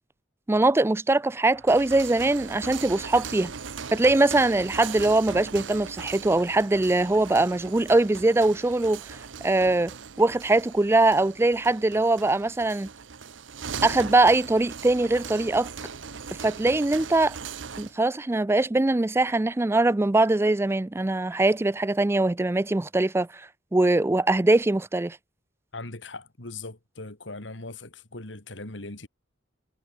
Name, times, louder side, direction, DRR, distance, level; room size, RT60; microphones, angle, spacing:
voice 1, 0.5-3.5 3.9-12.9 13.8-15.7 16.3-17.4 17.8-25.2, right 2 dB, 15° right, 0.4 m, -22 dB
sound 1, 1.5-18.0, right 6 dB, 85° right, 1.0 m, -39 dB
voice 2, 25.7-29.1, left 2 dB, 75° left, 2.9 m, -39 dB
head